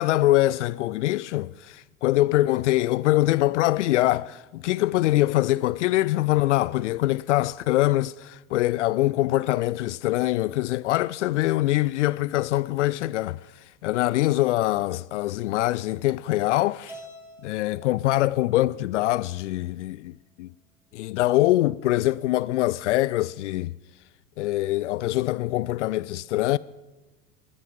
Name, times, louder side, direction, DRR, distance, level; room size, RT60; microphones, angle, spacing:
voice 1, 0.0-13.4 13.8-17.0 17.4-20.5 20.9-23.7 24.4-26.6, left 16 dB, 60° left, 0.5 m, -23 dB
Keyboard (musical), 16.9-19.2, right 1 dB, 5° right, 1.6 m, -48 dB
19.0 x 10.5 x 6.6 m
figure-of-eight pair, 80°, 41 cm